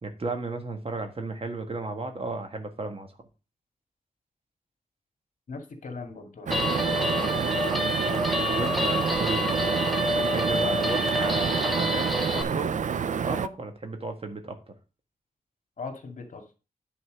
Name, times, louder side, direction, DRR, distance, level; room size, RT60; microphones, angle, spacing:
voice 1, 0.0-3.1 8.5-12.1 12.3-14.6, right 3 dB, 40° right, 5 dB, 1.6 m, -34 dB
voice 2, 5.5-7.4 15.8-16.4, left 4 dB, 60° left, 4 dB, 2.1 m, -40 dB
Guitar, 6.5-12.4, left 1 dB, ahead, 1.2 m, -28 dB
sound 1, 6.5-13.5, right 6 dB, 60° right, 0.4 m, -28 dB
9.9 x 4.3 x 6.4 m, 0.33 s
wide cardioid pair, 115°, 15 cm